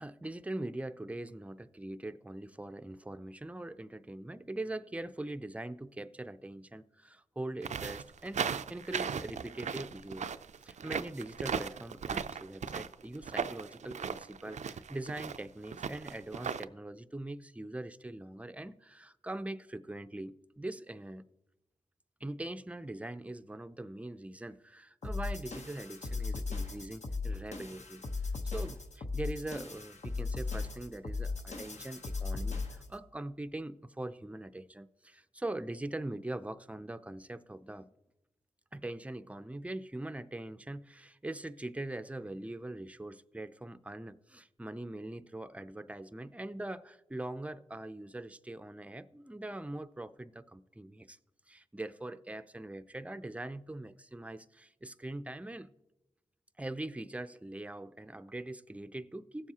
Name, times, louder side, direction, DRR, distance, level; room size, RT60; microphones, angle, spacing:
voice 1, 0.0-10.3 10.6-21.2 22.2-28.0 28.4-37.9 38.7-51.2 51.5-55.7 56.6-59.5, right 1 dB, 10° right, 0.5 m, -42 dB
sound 1, 7.6-16.6, right 6 dB, 65° right, 0.4 m, -37 dB
sound 2, 25.0-32.9, left 3 dB, 65° left, 1.0 m, -37 dB
17.0 x 7.3 x 2.8 m
cardioid pair, 50°, 13 cm